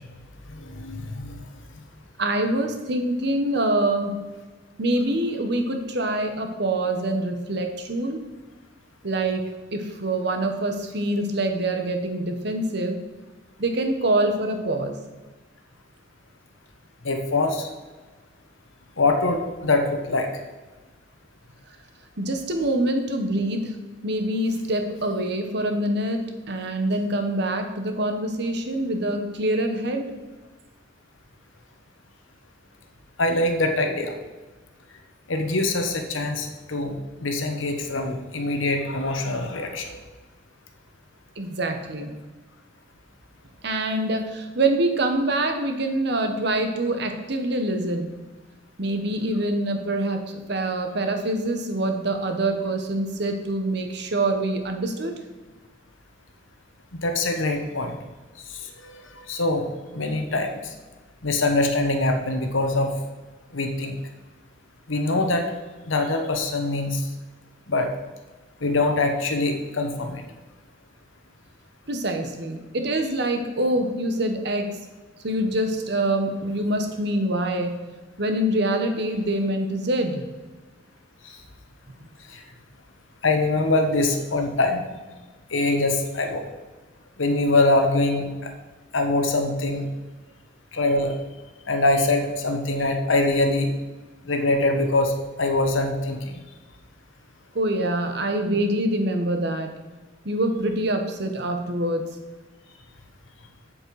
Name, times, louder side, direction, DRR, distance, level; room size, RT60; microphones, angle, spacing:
voice 1, 0.6-1.4 17.0-17.7 19.0-20.3 33.2-34.1 35.3-36.9 37.2-40.0 56.9-58.0 58.8-59.7 59.9-60.6 61.2-62.9 63.5-63.9 64.9-65.5 65.9-67.0 67.7-67.9 68.6-70.2 82.3-82.4 83.2-84.8 85.5-86.4 87.2-88.5 88.9-89.8 90.7-91.2 91.7-93.7 94.3-96.4, left 2 dB, 90° left, 5 dB, 1.3 m, -23 dB
voice 2, 2.2-4.2 4.8-8.2 9.0-13.0 13.6-15.0 22.2-23.8 24.0-30.1 41.4-42.1 43.6-48.1 48.8-55.1 71.9-74.8 75.2-77.8 78.2-80.2 97.5-99.7 100.2-102.1, right 1 dB, 60° right, 6 dB, 1.1 m, -25 dB
7.8 x 7.4 x 4.8 m, 1.3 s
head